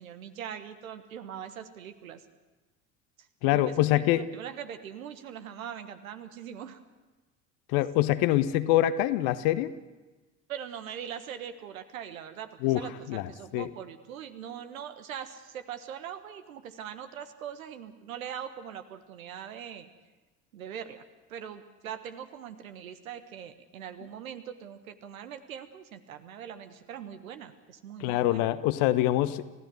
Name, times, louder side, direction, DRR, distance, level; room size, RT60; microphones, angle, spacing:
voice 1, 0.0-2.2 3.5-6.8 10.5-19.9 20.5-21.0 21.3-28.5, right 9 dB, 75° right, 9 dB, 1.5 m, -42 dB
voice 2, 3.4-4.2 7.7-9.7 12.6-12.8 13.1-13.7 28.0-29.4, left 14 dB, 55° left, 13 dB, 1.1 m, -25 dB
29.0 x 16.0 x 6.4 m, 1.2 s
figure-of-eight pair, 60°, 42 cm